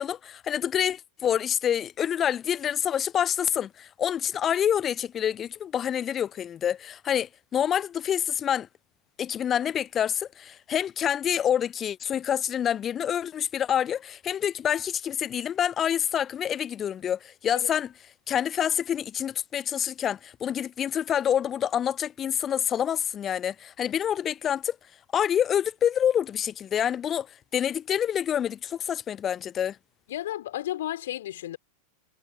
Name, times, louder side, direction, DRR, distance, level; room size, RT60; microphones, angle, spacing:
voice 1, 0.0-8.7 9.2-17.9 18.3-24.8 25.1-27.3 27.5-29.8, left 9 dB, 25° left, 0.7 m, -27 dB
voice 2, 30.1-31.6, left 13 dB, 60° left, 4.3 m, -33 dB
figure-of-eight pair, 90°, 0 cm